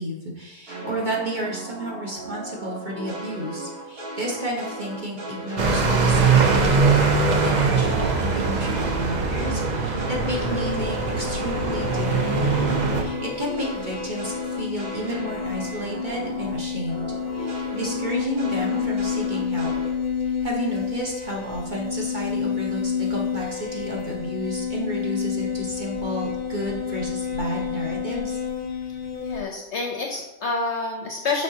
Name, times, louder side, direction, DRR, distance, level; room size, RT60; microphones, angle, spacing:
voice 1, 0.0-7.1 7.4-12.5 12.9-17.1 17.3-19.7 20.2-28.4, right 1 dB, 35° right, -3 dB, 1.1 m, -31 dB
sound 1, 0.7-7.0 7.3-16.6 16.9-19.9, right 2 dB, 70° right, 2.4 m, -36 dB
sound 2, 5.6-13.0, right 4 dB, 55° right, 0.4 m, -22 dB
sound 3, 10.5-29.4, left 7 dB, 35° left, 0.9 m, -29 dB
voice 2, 29.2-31.4, left 3 dB, 55° left, 1 dB, 0.9 m, -28 dB
6.7 x 5.1 x 2.8 m, 0.98 s
omnidirectional pair, 1.6 m